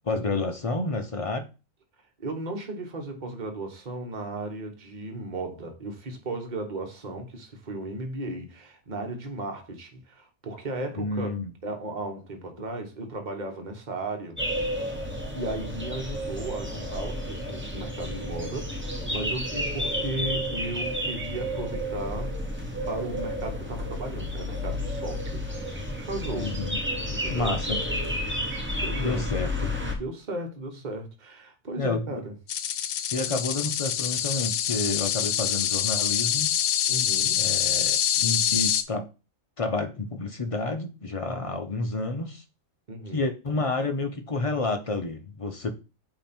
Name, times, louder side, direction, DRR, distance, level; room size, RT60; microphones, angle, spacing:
voice 1, 0.0-1.5 11.0-11.5 26.4-26.8 27.3-27.8 29.0-29.7 31.8-32.2 33.1-36.5 37.4-39.1 39.6-42.4 43.1-45.7, left 3 dB, 45° left, 0.4 m, -30 dB
voice 2, 2.2-14.4 15.3-22.4 22.9-26.6 27.1-27.5 28.8-29.2 30.0-32.3 36.9-37.4 41.2-41.5 42.9-43.2, right 2 dB, 35° right, 1.2 m, -36 dB
sound 1, 14.4-29.9, equal, 10° right, 0.9 m, -31 dB
sound 2, 32.5-38.8, left 10 dB, 80° left, 1.0 m, -25 dB
8.6 x 2.9 x 4.3 m
omnidirectional pair, 1.4 m